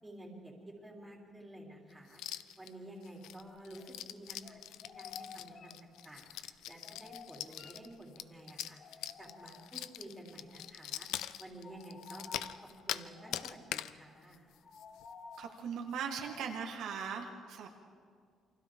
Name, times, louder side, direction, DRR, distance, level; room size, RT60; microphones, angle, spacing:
voice 1, 0.0-12.3 12.6-14.5, right 1 dB, 5° right, -2 dB, 3.4 m, -52 dB
sound 1, 2.1-2.7 3.0-13.1 13.3-13.9 14.3-14.4 14.7-15.1 15.3-15.4 15.9-16.1, left 12 dB, 90° left, 0.6 m, -43 dB
sound 2, 3.4-4.2 4.4-8.4 8.8-10.1 10.4-10.7 10.9-16.7, left 5 dB, 40° left, 1.0 m, -54 dB
voice 2, 15.4-17.7, right 6 dB, 70° right, 2 dB, 1.8 m, -39 dB
29.0 x 24.0 x 3.7 m, 2.1 s
cardioid pair, 165°, 0 cm